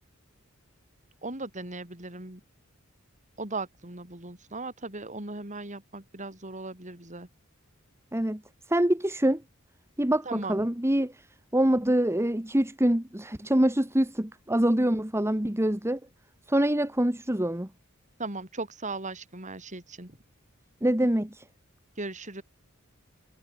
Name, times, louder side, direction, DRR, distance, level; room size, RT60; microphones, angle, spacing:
voice 1, 1.2-2.4 3.4-7.3 10.3-10.6 18.2-20.2 22.0-22.4, right 3 dB, 35° right, 5.5 m, -37 dB
voice 2, 8.7-9.4 10.0-11.1 11.5-16.0 16.5-17.7 20.8-21.4, right 1 dB, 15° right, 1.7 m, -25 dB
head